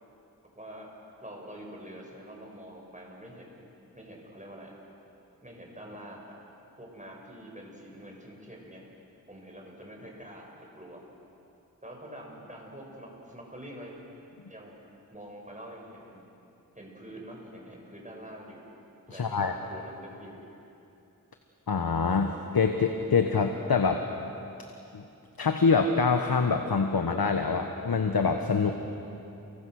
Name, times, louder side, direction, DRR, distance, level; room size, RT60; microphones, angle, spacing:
voice 1, 0.5-0.9 1.2-3.6 3.9-4.8 5.4-6.4 6.8-8.8 9.3-11.0 11.8-13.9 14.5-14.8 15.1-16.2 16.7-18.6 19.1-20.4, right 1 dB, 20° right, -1 dB, 6.8 m, -45 dB
voice 2, 19.1-19.6 21.7-24.0 24.9-25.0 25.4-28.7, left 5 dB, 85° left, 5 dB, 1.3 m, -25 dB
29.5 x 24.0 x 6.5 m, 2.9 s
wide cardioid pair, 45°, 36 cm